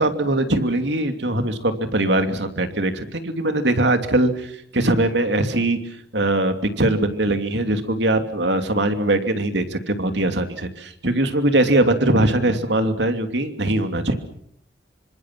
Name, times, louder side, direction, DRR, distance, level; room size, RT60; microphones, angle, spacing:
voice 1, 0.0-5.8 6.1-14.2, right 1 dB, 80° right, 7 dB, 2.9 m, -21 dB
27.0 x 25.5 x 6.2 m, 0.67 s
head